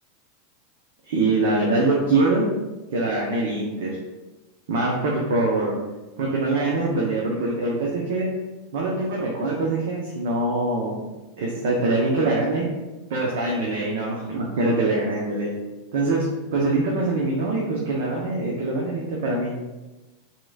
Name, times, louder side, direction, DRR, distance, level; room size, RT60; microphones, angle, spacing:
voice 1, 1.0-2.4 2.9-3.9 4.7-5.8 6.2-8.3 8.7-11.0 11.4-12.6 13.1-15.5 15.9-19.5, right 2 dB, 70° right, -3 dB, 0.8 m, -23 dB
5.8 x 3.0 x 2.4 m, 1.1 s
hypercardioid pair, 110°, 0 cm